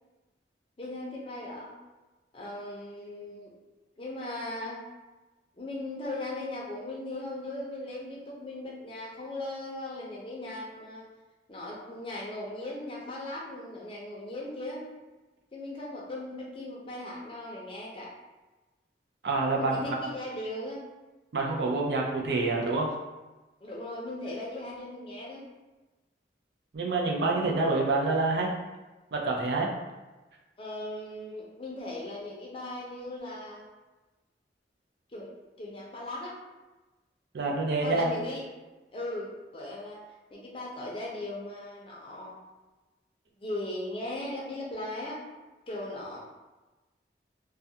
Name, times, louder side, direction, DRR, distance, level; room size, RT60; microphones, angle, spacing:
voice 1, 0.8-1.7 2.3-3.5 4.0-4.8 5.6-11.0 11.5-14.9 15.5-18.1 19.6-20.9 23.6-25.4 30.6-33.7 35.1-35.3 35.6-36.4 37.8-38.4 38.9-40.0 40.3-42.4 43.4-45.2 45.7-46.2, left 1 dB, 30° left, -4 dB, 0.5 m, -38 dB
voice 2, 19.2-19.8 21.3-22.9 26.7-28.5 29.1-29.7 37.3-38.1, right 3 dB, 70° right, 0 dB, 0.4 m, -27 dB
2.3 x 2.2 x 2.7 m, 1.2 s
head